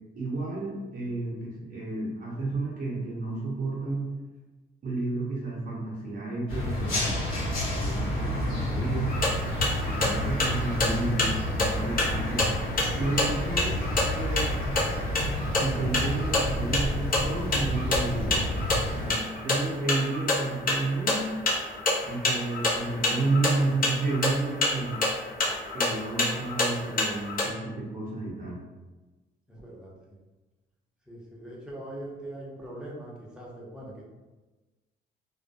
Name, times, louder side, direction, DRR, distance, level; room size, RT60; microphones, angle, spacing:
voice 1, 0.2-4.1 4.8-9.1 9.8-12.5 13.0-13.8 14.1-14.5 15.5-18.5 19.0-21.4 22.0-25.0 25.7-28.6, right 3 dB, 45° right, -5 dB, 0.7 m, -31 dB
sound 1, 6.5-19.1, left 1 dB, 85° left, 1.1 m, -30 dB
sound 2, 9.1-27.5, left 2 dB, 45° left, 0.7 m, -29 dB
voice 2, 29.5-30.2 31.1-34.0, right 1 dB, 5° right, -5 dB, 0.7 m, -42 dB
2.3 x 2.1 x 2.6 m, 1.2 s
cardioid pair, 90°, 20 cm